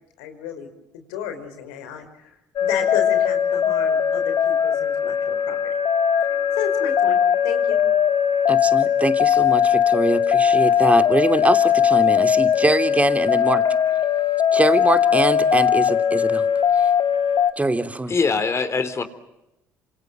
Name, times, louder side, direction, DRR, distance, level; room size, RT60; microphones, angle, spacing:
voice 1, 0.2-0.7 0.9-2.4 2.6-5.6 6.3-7.8, left 9 dB, 85° left, 8 dB, 5.1 m, -32 dB
sound 1, 2.6-17.5, left 8 dB, 55° left, 2.0 m, -19 dB
voice 2, 8.5-13.6 14.5-16.5 16.7-16.9 17.6-18.1, right 2 dB, 15° right, 8 dB, 2.9 m, -23 dB
voice 3, 18.1-19.0, left 4 dB, 35° left, 11 dB, 3.7 m, -22 dB
27.5 x 27.0 x 7.7 m, 0.92 s
supercardioid pair, 65°, 8 cm